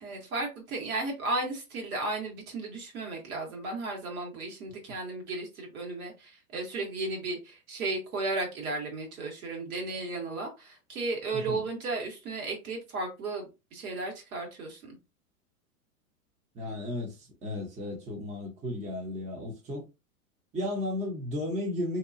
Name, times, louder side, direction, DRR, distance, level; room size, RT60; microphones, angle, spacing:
voice 1, 0.0-15.0, right 2 dB, 70° right, 1.5 m, -34 dB
voice 2, 16.5-19.9 20.5-22.0, left 1 dB, 15° right, 0.8 m, -34 dB
2.8 x 2.3 x 2.6 m
hypercardioid pair, 110°, 44 cm